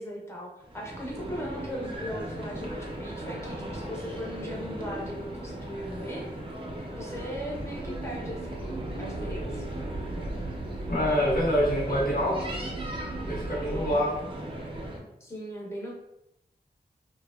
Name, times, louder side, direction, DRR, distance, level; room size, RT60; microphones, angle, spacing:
voice 1, 0.0-6.3 7.0-9.7 13.7-14.0 15.2-15.9, equal, 15° left, -2 dB, 0.6 m, -39 dB
sound 1, 0.6-15.0, right 1 dB, 30° right, 0.5 m, -37 dB
sound 2, 7.7-14.0, right 2 dB, 80° right, 0.4 m, -37 dB
voice 2, 10.9-12.5 13.3-14.1, equal, 60° left, -6 dB, 0.9 m, -26 dB
2.6 x 2.2 x 2.3 m, 0.84 s
wide cardioid pair, 95°, 17 cm